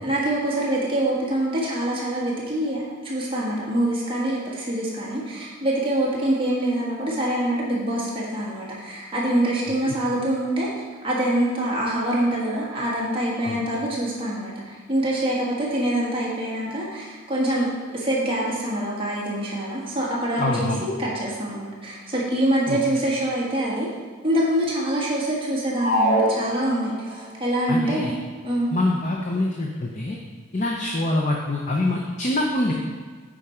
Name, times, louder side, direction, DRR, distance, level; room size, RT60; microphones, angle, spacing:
voice 1, 0.0-10.7 11.0-17.7 17.9-23.9 24.2-28.1 28.4-28.7, right 1 dB, 25° right, -5 dB, 1.5 m, -25 dB
voice 2, 20.4-20.8 22.7-22.8 27.7-28.1 28.7-30.2 30.5-32.7, left 2 dB, 35° left, 0 dB, 0.6 m, -25 dB
sound 1, 25.7-27.2, right 1 dB, 50° left, 1.6 m, -23 dB
8.6 x 5.2 x 4.4 m, 1.5 s
head